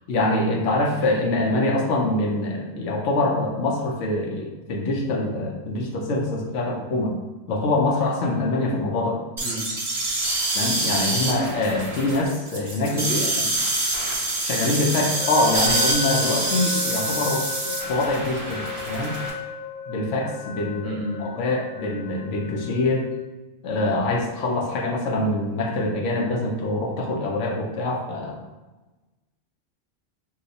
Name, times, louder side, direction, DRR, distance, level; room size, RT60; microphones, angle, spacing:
voice 1, 0.1-7.2 7.5-9.2 10.5-13.1 14.4-19.2 19.9-23.1 23.6-28.4, left 2 dB, 70° left, 0 dB, 0.9 m, -24 dB
sound 1, 9.4-19.3, right 2 dB, 40° right, 0.5 m, -26 dB
voice 2, 9.4-9.7 12.9-13.4 20.8-21.3, right 1 dB, 65° right, 0 dB, 0.8 m, -31 dB
sound 2, 15.2-23.2, left 7 dB, 50° left, 1.0 m, -35 dB
2.8 x 2.3 x 4.0 m, 1.1 s
omnidirectional pair, 1.3 m